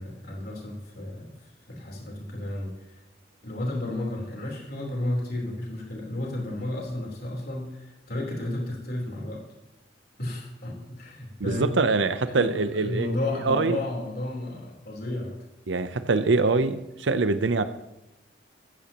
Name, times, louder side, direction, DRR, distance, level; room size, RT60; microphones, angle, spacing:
voice 1, 0.0-1.3 1.7-3.0 3.4-9.5 10.2-11.7 12.3-15.4, left 1 dB, 55° left, -2 dB, 3.8 m, -32 dB
voice 2, 11.4-13.1 13.4-13.8 15.7-17.6, right 3 dB, 80° right, 11 dB, 0.7 m, -24 dB
15.0 x 14.5 x 3.0 m, 0.95 s
head